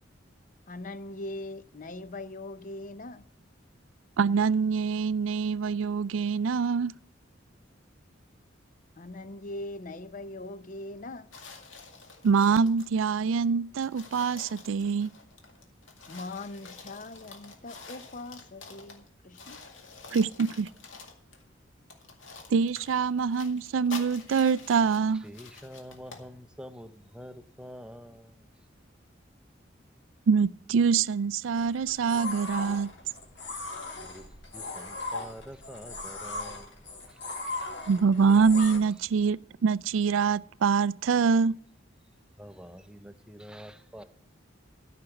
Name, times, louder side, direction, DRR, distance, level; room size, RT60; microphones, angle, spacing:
voice 1, 0.7-3.2 9.0-11.3 16.1-19.6, left 2 dB, 40° left, 0.6 m, -41 dB
voice 2, 4.2-6.9 12.2-15.1 20.1-20.7 22.5-25.2 30.3-32.9 37.9-41.5, right 5 dB, 80° right, 0.4 m, -25 dB
sound 1, 11.3-12.9 13.4-13.5 13.8-19.1 19.3-21.4 21.9-26.3, left 4 dB, 80° left, 2.1 m, -48 dB
voice 3, 25.1-28.5 34.0-34.3 34.5-36.7 37.1-37.2 37.6-37.7 42.4-44.0, equal, 5° right, 0.6 m, -46 dB
sound 2, 31.6-38.8, left 2 dB, 60° left, 3.1 m, -38 dB
13.5 x 6.0 x 7.8 m
head